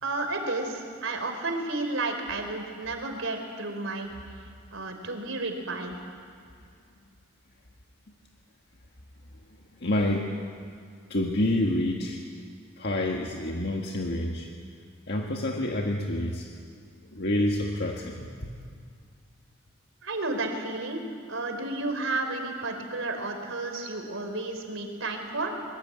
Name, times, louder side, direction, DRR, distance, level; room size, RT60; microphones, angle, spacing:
voice 1, 0.0-4.1 4.7-6.0 20.0-21.0 21.3-25.6, right 2 dB, 70° right, 5 dB, 3.8 m, -32 dB
voice 2, 9.8-10.3 11.1-12.2 12.8-14.5 15.1-16.5 17.1-18.5, left 1 dB, 55° left, 0 dB, 1.8 m, -28 dB
23.5 x 22.0 x 8.8 m, 2.2 s
head